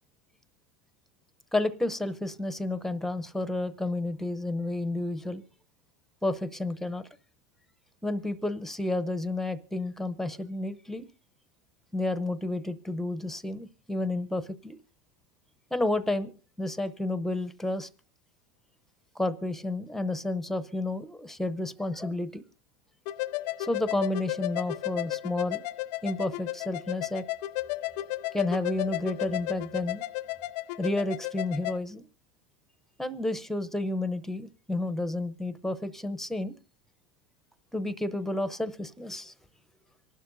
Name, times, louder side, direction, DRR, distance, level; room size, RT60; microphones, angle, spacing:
voice 1, 1.5-5.4 6.2-7.1 8.0-11.1 11.9-14.8 15.7-17.9 19.1-22.4 23.6-25.6 26.0-27.3 28.3-30.0 30.8-32.1 33.0-36.6 37.7-39.3, left 2 dB, ahead, 13 dB, 0.7 m, -31 dB
sound 1, 23.1-31.8, left 17 dB, 75° left, 0.6 m, -34 dB
26.0 x 12.0 x 2.6 m, 0.33 s
supercardioid pair, 135°, 21 cm